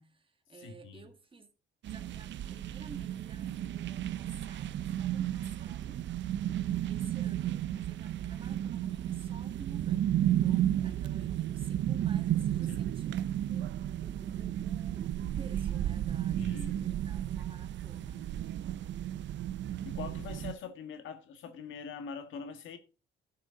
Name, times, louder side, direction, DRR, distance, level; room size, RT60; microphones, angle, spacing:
voice 1, 0.0-1.5 1.9-18.4, right 4 dB, 25° right, 2.0 m, -53 dB
voice 2, 0.6-1.1 12.7-12.9 16.4-16.8 19.8-22.8, left 6 dB, 80° left, 1.7 m, -43 dB
sound 1, 1.8-20.5, right 11 dB, 65° right, 0.6 m, -33 dB
12.0 x 6.6 x 3.8 m
cardioid pair, 90°, 20 cm